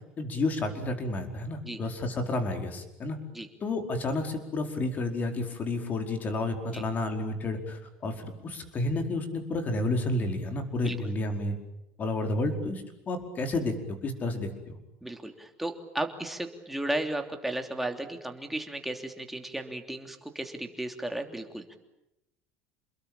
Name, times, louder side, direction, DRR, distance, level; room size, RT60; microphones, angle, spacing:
voice 1, 0.2-3.2 3.6-11.6 12.0-14.8, left 2 dB, 30° left, 5 dB, 4.9 m, -31 dB
voice 2, 15.0-21.8, right 1 dB, 5° right, 4 dB, 3.1 m, -34 dB
29.0 x 21.5 x 9.0 m, 0.87 s
cardioid pair, 145°, 6 cm